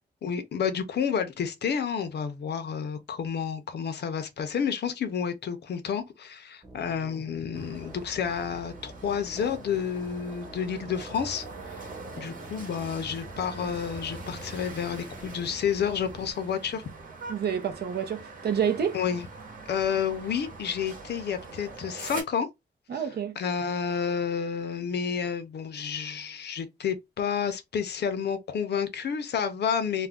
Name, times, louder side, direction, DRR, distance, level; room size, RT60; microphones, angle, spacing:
voice 1, 0.2-11.5 11.8-11.9 12.2-16.8 18.9-19.3 19.7-22.5 22.9-23.0 23.4-30.1, left 7 dB, 70° left, 0.5 m, -30 dB
sound 1, 6.6-16.3, right 2 dB, 15° right, 0.5 m, -47 dB
sound 2, 7.5-22.2, right 3 dB, 50° right, 1.0 m, -43 dB
voice 2, 17.3-19.0 22.9-23.4, right 8 dB, 65° right, 0.6 m, -28 dB
2.4 x 2.1 x 3.4 m
wide cardioid pair, 155°, 18 cm